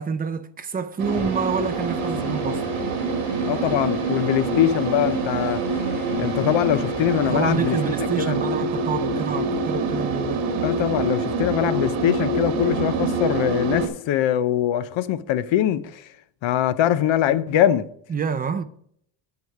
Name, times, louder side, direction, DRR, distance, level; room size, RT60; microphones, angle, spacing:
voice 1, 0.0-2.6 7.2-10.5 18.1-18.6, right 6 dB, 20° right, 0.4 m, -27 dB
sound 1, 1.0-8.1, right 2 dB, 5° left, 4.9 m, -38 dB
sound 2, 1.0-13.9, right 3 dB, 65° right, 1.8 m, -26 dB
voice 2, 3.5-5.6 6.2-7.8 8.2-8.4 10.6-16.1 16.4-17.9, left 11 dB, 65° left, 0.8 m, -22 dB
9.6 x 7.0 x 4.8 m
cardioid pair, 175°, 50 cm